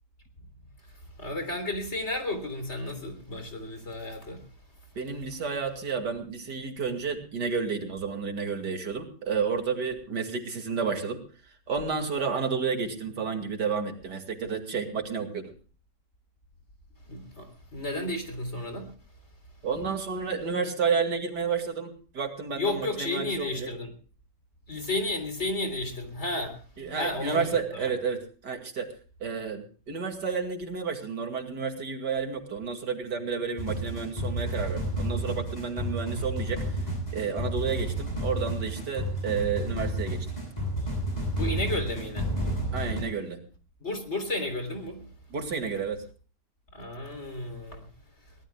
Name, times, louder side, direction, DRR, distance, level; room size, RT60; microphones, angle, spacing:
voice 1, 1.2-4.4 17.1-18.9 22.6-23.9 24.7-26.6 26.9-27.5 27.8-27.9 41.3-42.3 43.8-45.0 46.7-47.9, left 2 dB, 40° left, 3.8 m, -32 dB
voice 2, 5.0-11.2 11.7-15.5 19.6-23.7 26.8-28.9 29.2-36.6 37.1-40.3 42.7-43.4 45.3-46.0, right 5 dB, 75° right, 2.9 m, -31 dB
sound 1, 33.6-43.0, right 1 dB, 20° left, 8.3 m, -31 dB
23.5 x 18.5 x 2.3 m
omnidirectional pair, 1.8 m